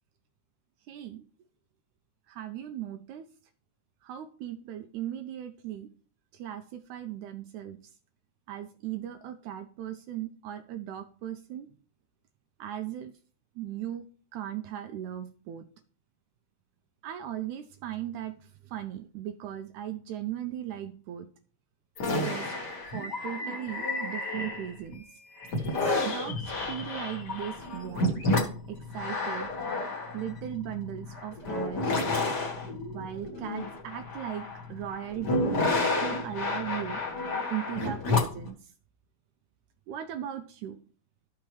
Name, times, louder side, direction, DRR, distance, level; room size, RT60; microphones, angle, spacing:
voice 1, 0.9-1.2 2.3-3.2 4.0-5.9 6.3-7.8 8.5-11.7 12.6-13.1 13.6-14.0 14.3-15.7 17.0-18.3 18.7-21.3 22.2-22.6 22.9-25.0 26.0-28.2 28.7-29.5 30.1-32.0 32.9-35.6 36.0-37.0 37.5-38.6 39.9-40.8, right 11 dB, 80° right, 9 dB, 1.8 m, -37 dB
sound 1, 22.0-24.9 25.4-38.5, left 2 dB, 40° left, 1.7 m, -30 dB
13.0 x 6.0 x 3.1 m, 0.42 s
omnidirectional pair, 3.9 m